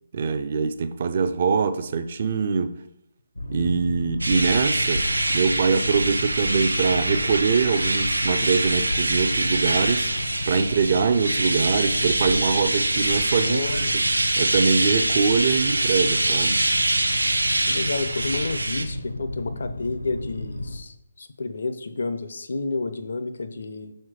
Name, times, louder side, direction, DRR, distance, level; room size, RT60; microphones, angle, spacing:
voice 1, 0.1-2.7 3.5-10.1 10.5-14.0 14.4-16.6, right 5 dB, 40° right, 0.5 m, -23 dB
Boat Water vehicle, 3.4-20.8, left 1 dB, 80° left, 1.0 m, -33 dB
sound 1, 4.2-18.9, right 2 dB, 75° right, 0.8 m, -24 dB
voice 2, 13.4-13.9 17.7-23.9, left 3 dB, 55° left, 0.6 m, -30 dB
6.0 x 4.3 x 4.8 m
figure-of-eight pair, 145°, 0 cm